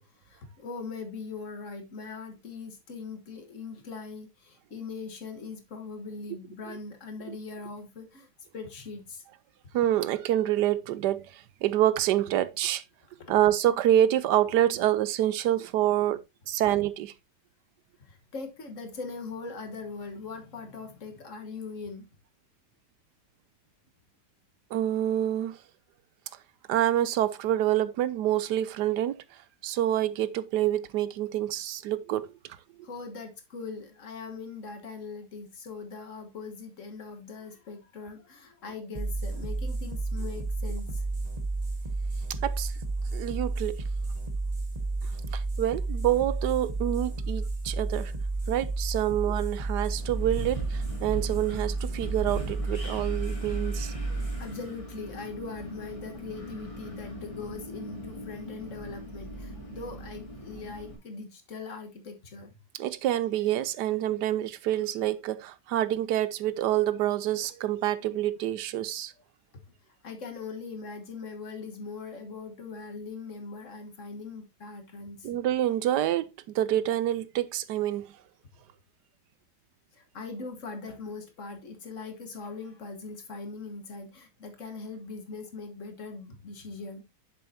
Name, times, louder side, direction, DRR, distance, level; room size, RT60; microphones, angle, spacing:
voice 1, 0.0-9.2 13.2-13.4 18.0-22.1 32.8-41.0 54.4-62.6 69.7-69.8 70.0-75.3 79.9-87.0, left 4 dB, 50° left, 1.6 m, -41 dB
voice 2, 9.7-12.8 13.3-17.1 24.7-25.6 26.7-29.2 29.6-32.3 42.4-42.7 43.1-43.8 45.3-48.1 48.5-53.9 62.8-69.1 75.2-78.1, right 12 dB, 75° right, 1.2 m, -27 dB
sound 1, 38.9-56.0, right 3 dB, 25° right, 1.3 m, -32 dB
Wind, 49.9-60.9, right 1 dB, 20° left, 2.6 m, -41 dB
7.7 x 6.9 x 2.7 m
omnidirectional pair, 1.8 m